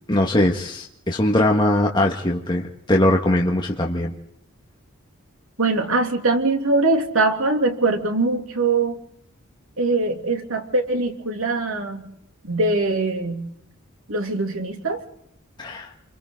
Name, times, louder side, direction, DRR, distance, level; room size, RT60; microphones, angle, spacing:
voice 1, 0.1-4.1 15.6-15.9, left 1 dB, 20° left, 0 dB, 1.8 m, -21 dB
voice 2, 5.6-9.0 9.8-12.1 12.4-13.5 14.1-15.0, right 3 dB, 75° right, 3 dB, 3.2 m, -22 dB
29.0 x 23.5 x 4.0 m, 0.74 s
head